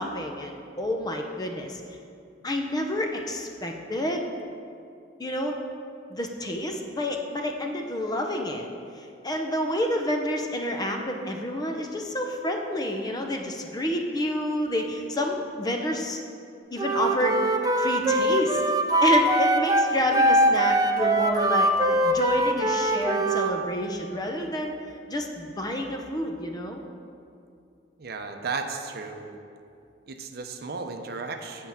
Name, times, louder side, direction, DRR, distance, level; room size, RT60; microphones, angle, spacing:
voice 1, 0.0-1.8 2.4-4.3 5.2-5.6 6.1-8.7 9.0-16.2 16.7-17.5 17.8-18.6 19.0-24.8 25.1-26.8, left 1 dB, 25° left, 3 dB, 0.7 m, -29 dB
Wind instrument woodwind instrument, 16.8-23.5, right 1 dB, 20° right, 0.4 m, -22 dB
voice 2, 28.0-29.3 30.1-31.7, right 4 dB, 60° right, 5 dB, 0.6 m, -34 dB
8.0 x 4.6 x 7.2 m, 2.5 s
head